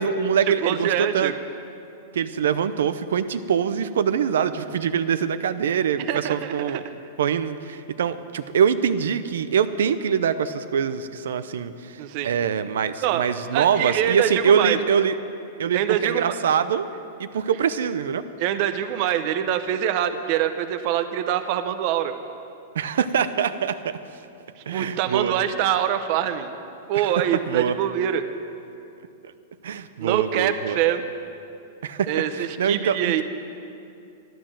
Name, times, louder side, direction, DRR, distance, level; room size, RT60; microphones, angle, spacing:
voice 1, 0.0-1.3 2.1-6.8 7.2-15.2 15.6-16.9 17.2-18.2 22.7-23.9 24.7-25.3 26.9-27.1 27.5-27.7 29.6-30.8 31.8-32.1 32.3-33.2, right 7 dB, 85° right, 11 dB, 0.7 m, -24 dB
voice 2, 0.6-1.3 6.1-6.8 12.0-12.3 13.0-13.2 13.5-14.8 15.7-16.4 18.4-22.2 24.6-26.5 26.9-28.2 30.0-31.0 32.1-33.2, right 10 dB, 35° right, 9 dB, 0.7 m, -24 dB
12.5 x 12.0 x 7.5 m, 2.6 s
supercardioid pair, 175°, 0 cm